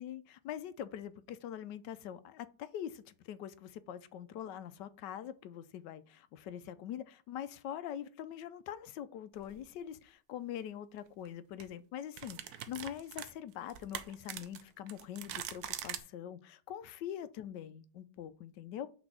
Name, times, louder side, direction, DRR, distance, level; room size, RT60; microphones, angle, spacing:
voice 1, 0.0-18.9, left 10 dB, 75° left, 1.2 m, -44 dB
sound 1, 9.4-9.6 11.1-11.3 11.6-11.7 12.2-16.0, right 10 dB, 65° right, 1.1 m, -43 dB
6.0 x 4.3 x 6.2 m
omnidirectional pair, 2.0 m